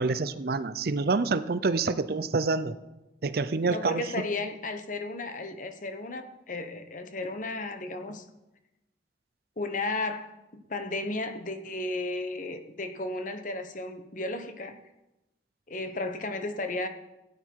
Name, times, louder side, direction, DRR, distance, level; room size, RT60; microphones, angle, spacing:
voice 1, 0.0-2.8 3.2-4.2, right 3 dB, 55° right, 13 dB, 0.6 m, -27 dB
voice 2, 3.7-8.2 9.6-14.8 15.7-16.9, left 2 dB, 45° left, 8 dB, 1.0 m, -34 dB
16.0 x 9.4 x 4.7 m, 0.98 s
head